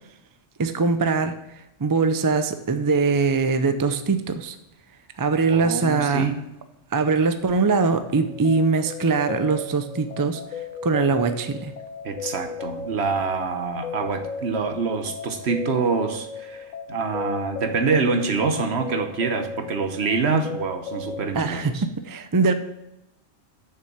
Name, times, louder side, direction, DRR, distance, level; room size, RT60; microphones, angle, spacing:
voice 1, 0.6-1.4 1.8-4.6 5.2-6.3 6.9-10.4 10.8-11.7 21.3-22.5, right 4 dB, 35° right, 9 dB, 0.3 m, -22 dB
voice 2, 5.5-6.3 12.0-21.8, right 4 dB, 60° right, 7 dB, 1.2 m, -26 dB
sound 1, 8.0-21.3, left 3 dB, 85° left, 1.1 m, -36 dB
6.9 x 6.6 x 7.2 m, 0.88 s
omnidirectional pair, 1.3 m